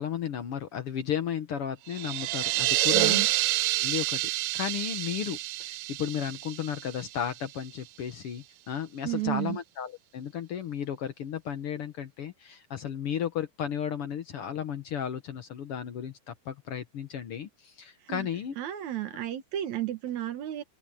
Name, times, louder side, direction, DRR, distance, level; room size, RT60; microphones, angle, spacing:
voice 1, 0.0-3.2 3.8-18.6, left 9 dB, 70° left, 1.3 m, -34 dB
sound 1, 1.9-7.5, right 18 dB, 80° right, 2.0 m, -28 dB
voice 2, 2.9-3.3 9.0-9.6 18.1-18.3 18.6-20.6, right 13 dB, 60° right, 2.3 m, -32 dB
omnidirectional pair, 4.2 m